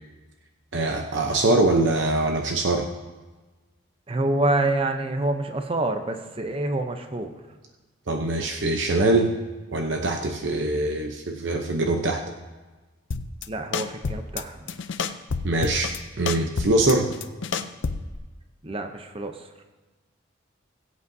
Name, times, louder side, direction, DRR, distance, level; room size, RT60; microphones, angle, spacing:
voice 1, 0.7-2.9 8.1-9.3 9.7-12.2 15.4-17.1, right 2 dB, 60° right, 2 dB, 0.8 m, -23 dB
voice 2, 4.1-7.3 13.5-14.8 18.6-19.6, right 2 dB, 25° right, 6 dB, 0.7 m, -27 dB
sound 1, 13.1-13.5 13.7-14.4 14.7-16.0 16.3-18.2, left 5 dB, 65° left, 0.5 m, -29 dB
21.0 x 8.2 x 2.7 m, 1.2 s
head